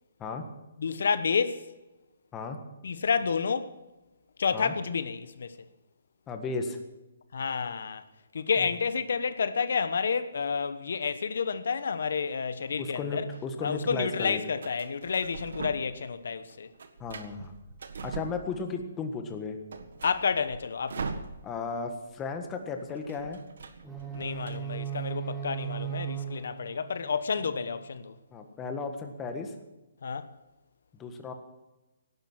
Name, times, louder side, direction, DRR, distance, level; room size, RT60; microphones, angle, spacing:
voice 1, 0.8-1.7 2.8-3.7 4.4-5.6 7.3-8.0 8.3-13.3 13.6-16.7 20.0-21.1 24.1-28.1 30.0-30.3, left 5 dB, 70° left, 1.1 m, -30 dB
voice 2, 6.3-6.8 12.8-14.4 17.0-17.5 18.0-19.6 21.4-23.4 28.3-29.5 31.0-31.3, left 4 dB, 15° left, 1.6 m, -35 dB
sound 1, 12.6-13.4 14.6-16.1 16.4-18.9 19.2-19.3 19.6-21.8 22.0-22.2 22.5-24.6, right 4 dB, 70° right, 1.6 m, -42 dB
sound 2, 23.8-27.9, right 10 dB, 5° right, 1.7 m, -37 dB
18.0 x 11.0 x 6.2 m
hypercardioid pair, 160°, 0 cm